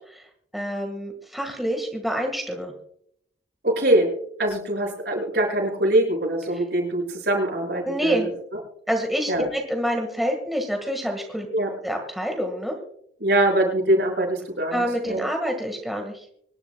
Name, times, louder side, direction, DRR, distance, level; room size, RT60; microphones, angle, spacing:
voice 1, 0.5-2.7 6.5-6.6 7.8-8.3 8.9-11.5 11.8-12.8 14.7-16.3, equal, ahead, 2 dB, 1.6 m, -27 dB
voice 2, 3.6-4.1 4.4-8.3 9.3-9.5 11.5-11.7 13.2-15.2, right 1 dB, 60° right, -1 dB, 6.1 m, -23 dB
25.5 x 11.0 x 2.3 m, 0.69 s
head